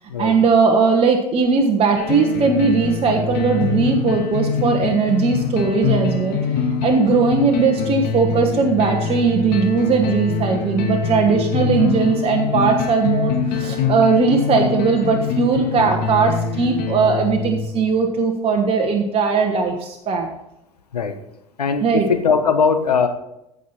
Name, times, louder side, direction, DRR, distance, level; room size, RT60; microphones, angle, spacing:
voice 1, 0.2-6.4 6.8-20.3 21.8-22.0, right 4 dB, 30° right, 3 dB, 1.2 m, -18 dB
sound 1, 2.0-17.9, left 5 dB, 55° left, 1.8 m, -24 dB
voice 2, 21.6-23.1, left 6 dB, 80° left, 7 dB, 1.1 m, -19 dB
15.0 x 5.6 x 4.3 m, 0.84 s
figure-of-eight pair, 75°, 20 cm